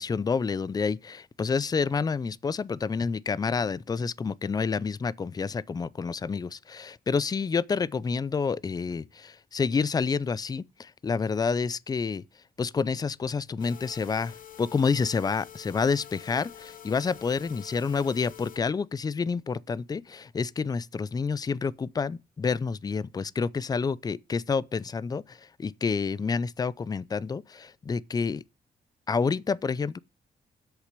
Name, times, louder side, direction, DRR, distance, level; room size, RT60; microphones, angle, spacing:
voice 1, 0.0-12.2 12.6-28.4 29.1-30.0, left 5 dB, 25° left, 0.4 m, -29 dB
sound 1, 13.6-18.6, left 9 dB, 55° left, 1.1 m, -47 dB
8.1 x 6.6 x 6.6 m
cardioid pair, 120°, 17 cm